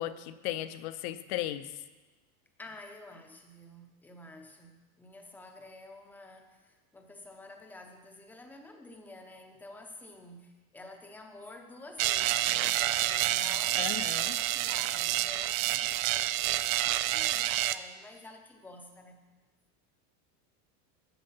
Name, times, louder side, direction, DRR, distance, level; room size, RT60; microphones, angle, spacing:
voice 1, 0.0-1.7 13.8-14.4, left 13 dB, 45° left, 13 dB, 0.5 m, -36 dB
voice 2, 2.6-19.2, left 2 dB, 5° left, 3 dB, 0.6 m, -50 dB
sound 1, 12.0-17.8, right 14 dB, 60° right, 0.6 m, -28 dB
12.0 x 7.6 x 5.5 m, 1.2 s
supercardioid pair, 165°, 47 cm